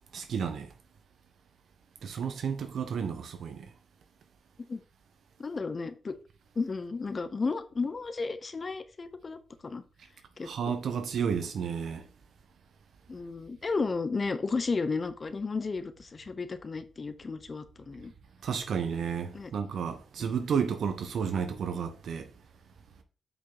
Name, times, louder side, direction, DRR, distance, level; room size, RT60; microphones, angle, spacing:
voice 1, 0.1-0.7 2.0-3.7 10.4-12.0 18.4-22.3, right 7 dB, 80° right, 1.3 m, -32 dB
voice 2, 5.4-6.1 6.6-9.8 10.4-10.5 13.1-18.1 19.3-19.5 20.2-20.5, left 4 dB, 40° left, 0.9 m, -33 dB
7.7 x 5.6 x 4.1 m
cardioid pair, 90°, 0 cm